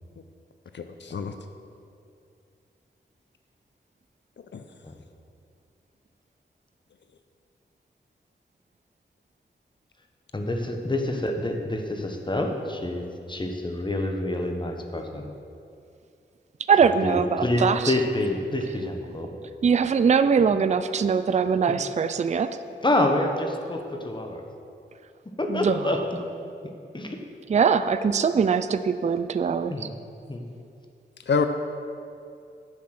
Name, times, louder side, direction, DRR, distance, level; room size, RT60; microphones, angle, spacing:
voice 1, 0.7-1.3 4.5-4.6 20.5-20.7 31.3-31.4, left 5 dB, 70° left, 7 dB, 0.5 m, -26 dB
voice 2, 10.3-13.0 13.3-15.3 17.0-19.3 22.8-24.4 25.4-26.2 26.9-27.2 29.7-29.9 30.3-30.4, left 1 dB, 25° left, 3 dB, 1.1 m, -27 dB
voice 3, 16.7-17.9 19.6-22.5 25.5-25.8 27.5-29.7, right 6 dB, 35° right, 11 dB, 0.4 m, -22 dB
7.5 x 7.2 x 5.9 m, 2.5 s
wide cardioid pair, 60°, 19 cm